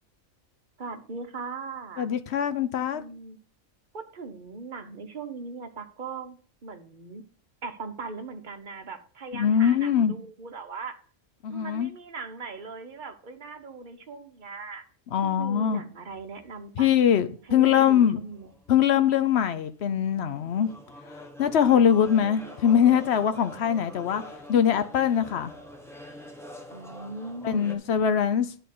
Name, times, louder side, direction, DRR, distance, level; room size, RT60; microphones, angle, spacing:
voice 1, 0.8-2.1 2.9-3.4 3.9-7.2 7.6-11.0 11.5-14.8 15.2-16.9 17.5-18.5 26.7-27.8, right 4 dB, 40° right, 1.0 m, -39 dB
voice 2, 2.0-3.0 9.3-10.2 11.4-11.9 15.1-15.8 16.8-18.2 18.7-20.7 21.1-24.2 24.5-25.5 27.4-28.5, left 9 dB, 60° left, 0.8 m, -22 dB
sound 1, 16.1-16.7 17.0-17.1 17.5-27.8, equal, ahead, 1.0 m, -46 dB
10.5 x 3.9 x 6.6 m
omnidirectional pair, 1.4 m